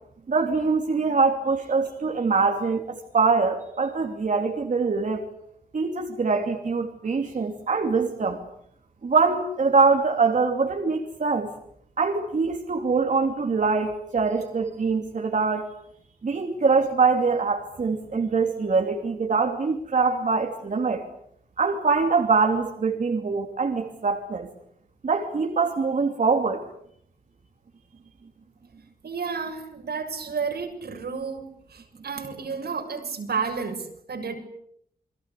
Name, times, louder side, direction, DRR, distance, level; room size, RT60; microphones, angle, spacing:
voice 1, 0.3-5.2 5.7-8.4 9.0-11.5 12.0-15.7 16.2-21.0 21.6-24.5 25.0-26.6, right 4 dB, 50° right, 3 dB, 3.0 m, -23 dB
voice 2, 29.0-34.3, right 5 dB, 85° right, 3 dB, 6.8 m, -31 dB
29.0 x 23.0 x 8.5 m, 0.71 s
wide cardioid pair, 160°, 16 cm